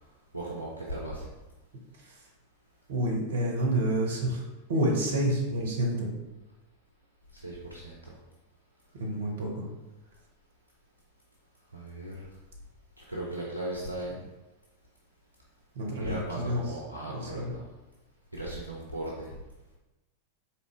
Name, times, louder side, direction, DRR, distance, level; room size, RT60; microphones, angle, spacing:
voice 1, 0.3-1.3 7.4-8.0 11.7-12.3 13.1-14.3 16.0-17.6 18.3-19.3, right 1 dB, 85° right, -5 dB, 0.6 m, -37 dB
voice 2, 1.9-2.3 2.9-4.4 4.7-6.1 8.9-9.6 15.7-16.6 17.1-17.5, right 1 dB, 60° right, -1 dB, 1.0 m, -29 dB
4.1 x 3.1 x 3.1 m, 1.1 s
figure-of-eight pair, 90°, 0 cm